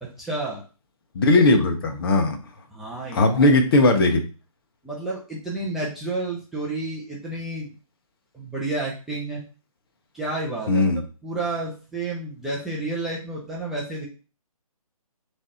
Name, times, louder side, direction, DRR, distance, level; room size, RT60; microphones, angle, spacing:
voice 1, 0.0-0.6 2.7-3.6 4.8-7.7 8.3-9.4 10.1-10.9 11.2-14.1, right 2 dB, ahead, -7 dB, 0.5 m, -30 dB
voice 2, 1.1-2.4 3.1-4.2 10.7-11.0, left 2 dB, 40° left, 6 dB, 0.9 m, -18 dB
3.7 x 3.3 x 4.2 m, 0.35 s
hypercardioid pair, 155°, 19 cm